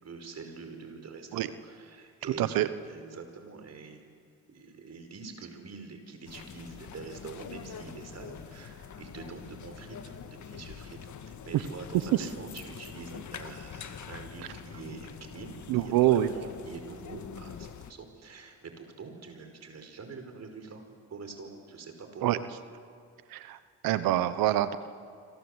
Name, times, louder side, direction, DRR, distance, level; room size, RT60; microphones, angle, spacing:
voice 1, 0.0-2.6 2.8-4.2 4.5-20.8 21.1-22.4, right 4 dB, 50° right, 6 dB, 5.5 m, -45 dB
voice 2, 2.4-2.7 11.5-11.6 15.7-16.3 22.2-22.4 23.3-23.6 23.8-24.8, right 13 dB, 80° right, 13 dB, 1.1 m, -25 dB
sound 1, 6.3-17.9, left 8 dB, 55° left, 1.9 m, -45 dB
27.0 x 26.5 x 8.2 m, 2.2 s
supercardioid pair, 70°, 34 cm